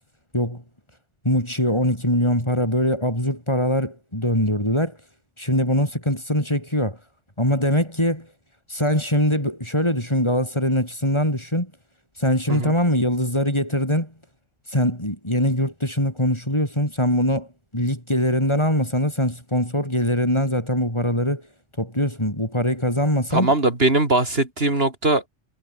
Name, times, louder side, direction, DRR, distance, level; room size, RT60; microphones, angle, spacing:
voice 1, 1.2-5.0 5.4-7.0 7.4-8.3 8.7-11.7 12.2-14.1 14.7-17.5 17.7-21.4 21.8-23.5, equal, 25° left, 8.1 m, -22 dB
voice 2, 23.3-25.2, right 2 dB, 55° right, 3.8 m, -20 dB
omnidirectional pair, 1.2 m